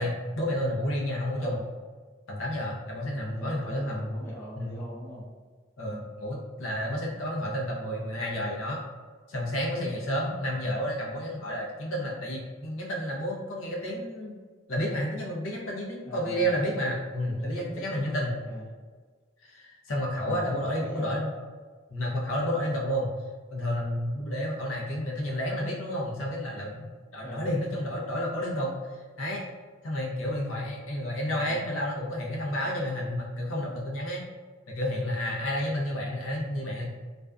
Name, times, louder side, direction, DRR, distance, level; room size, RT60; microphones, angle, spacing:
voice 1, 0.0-1.6 2.3-4.2 4.6-4.7 5.8-8.8 9.3-14.3 14.7-18.3 19.4-21.3 21.9-23.1 23.5-28.7 29.2-29.5 29.8-34.2 34.7-36.9, equal, 90° left, -3 dB, 0.6 m, -31 dB
voice 2, 1.3-1.7 3.1-5.3 5.8-6.1 16.0-16.6 17.3-18.6 20.2-21.2 27.2-27.5 31.3-31.7, equal, 10° left, -6 dB, 0.5 m, -41 dB
2.5 x 2.2 x 2.3 m, 1.5 s
head